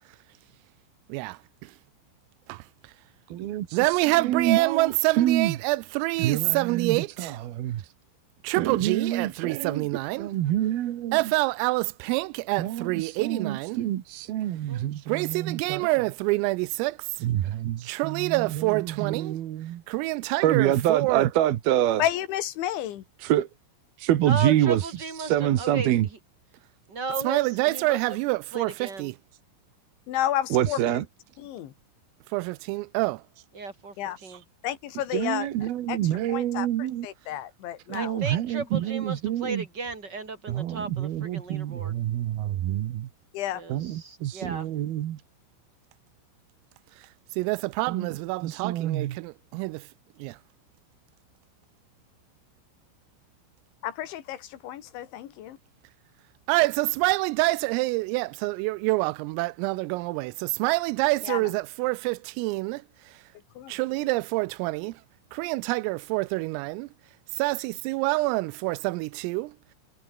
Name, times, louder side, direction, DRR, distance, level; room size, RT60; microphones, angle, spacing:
voice 1, 1.1-1.7 2.5-2.6 3.7-7.4 8.4-10.3 11.1-13.8 15.1-17.2 17.8-19.4 19.9-21.3 27.2-29.2 32.3-33.2 47.0-47.1 47.4-49.9 50.2-50.4 56.5-63.2 63.7-65.0 65.3-66.9 67.3-69.5, right 22 dB, 90° right, 3.3 m, -27 dB
voice 2, 3.3-5.6 6.2-7.8 8.6-9.9 10.2-11.2 12.6-15.9 17.2-19.8 20.4-22.0 23.2-23.5 24.0-24.9 25.2-26.1 30.5-31.0 35.1-37.1 37.9-39.6 40.5-42.3 42.7-43.1 43.7-45.2 47.9-48.1 48.4-49.2, right 12 dB, 65° right, 2.7 m, -27 dB
voice 3, 22.0-23.0 30.1-30.8 31.4-31.7 34.0-34.2 34.6-35.5 35.9-38.2 43.3-43.6 53.8-55.6 61.2-61.6 63.6-64.1, left 12 dB, 70° left, 4.1 m, -31 dB
voice 4, 24.3-26.2 26.9-28.0 28.5-29.1 33.5-34.0 34.2-34.4 37.9-42.0 43.5-44.8, right 3 dB, 25° right, 3.7 m, -35 dB
omnidirectional pair, 5.9 m